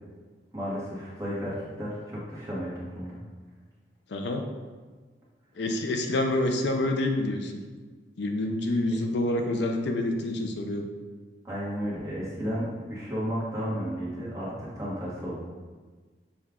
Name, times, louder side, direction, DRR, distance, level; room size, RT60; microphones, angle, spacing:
voice 1, 0.5-3.2 8.9-9.0 11.4-15.3, equal, 15° right, -8 dB, 1.1 m, -33 dB
voice 2, 4.1-4.4 5.6-7.5 8.2-10.9, left 1 dB, 70° left, 4 dB, 0.4 m, -27 dB
6.4 x 2.3 x 3.6 m, 1.4 s
head